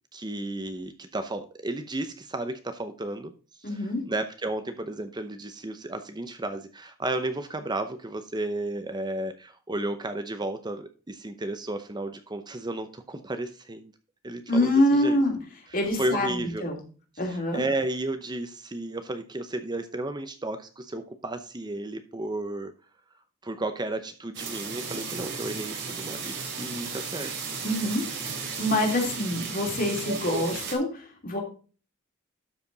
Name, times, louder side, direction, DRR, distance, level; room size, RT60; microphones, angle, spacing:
voice 1, 0.1-3.3 3.6-13.9 14.2-15.2 15.7-16.7 17.3-22.7 23.4-27.3, right 2 dB, 20° right, 8 dB, 0.7 m, -33 dB
voice 2, 3.6-4.0 14.5-15.4 15.7-16.8 17.2-17.6 27.6-31.4, left 1 dB, 45° left, 1 dB, 2.8 m, -26 dB
sound 1, 24.3-30.7, right 5 dB, 60° right, 3.3 m, -34 dB
12.5 x 5.0 x 3.9 m, 0.37 s
head